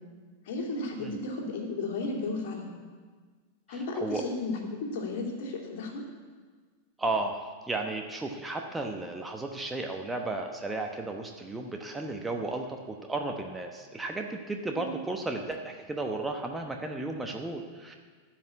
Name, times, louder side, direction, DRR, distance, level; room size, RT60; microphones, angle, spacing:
voice 1, 0.4-2.7 3.7-4.6 4.9-6.0 14.7-15.1, left 3 dB, 50° left, 0 dB, 2.7 m, -34 dB
voice 2, 3.7-4.2 7.0-18.0, right 2 dB, 10° right, 3 dB, 1.0 m, -34 dB
13.5 x 6.0 x 8.3 m, 1.5 s
figure-of-eight pair, 90°, 0 cm